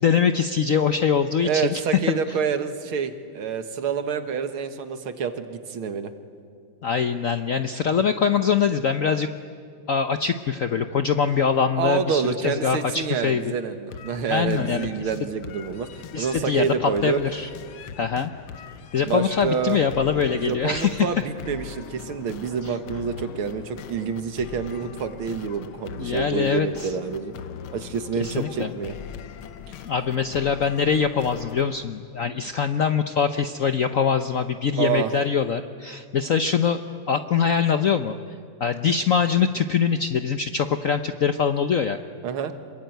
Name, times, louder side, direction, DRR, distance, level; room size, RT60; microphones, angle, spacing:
voice 1, 0.0-1.8 2.1-2.2 6.8-9.3 9.9-13.5 14.3-15.1 16.1-17.5 18.0-18.3 18.9-21.1 22.6-22.7 26.0-26.9 28.2-28.7 29.8-36.8 37.1-38.1 38.6-42.0, left 6 dB, 60° left, 8 dB, 0.9 m, -23 dB
voice 2, 1.4-6.1 11.8-17.2 19.0-19.8 20.3-27.3 27.7-28.9 34.8-35.1 42.2-42.5, right 6 dB, 85° right, 9 dB, 2.3 m, -27 dB
sound 1, 13.9-31.9, left 8 dB, 85° left, 1.8 m, -41 dB
26.5 x 22.5 x 9.2 m, 2.2 s
omnidirectional pair, 2.3 m